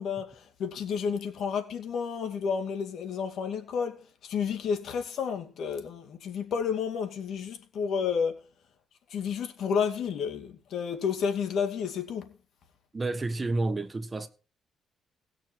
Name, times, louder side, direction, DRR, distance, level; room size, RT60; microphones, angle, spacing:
voice 1, 0.0-8.4 9.1-12.4, left 6 dB, 70° left, 2.4 m, -31 dB
voice 2, 12.9-14.3, right 2 dB, 25° right, 1.5 m, -30 dB
19.0 x 6.5 x 4.6 m
cardioid pair, 90°, 0 cm